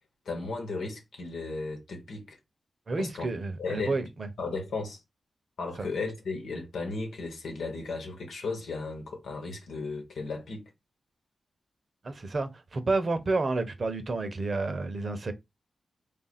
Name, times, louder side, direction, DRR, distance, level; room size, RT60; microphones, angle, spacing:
voice 1, 0.2-2.4 3.0-3.3 3.6-4.0 4.4-5.0 5.6-10.7, left 3 dB, 80° left, 1.1 m, -35 dB
voice 2, 2.9-4.3 5.8-5.9 12.0-15.3, right 3 dB, 55° right, 0.8 m, -30 dB
3.3 x 2.5 x 4.1 m
supercardioid pair, 45°, 0 cm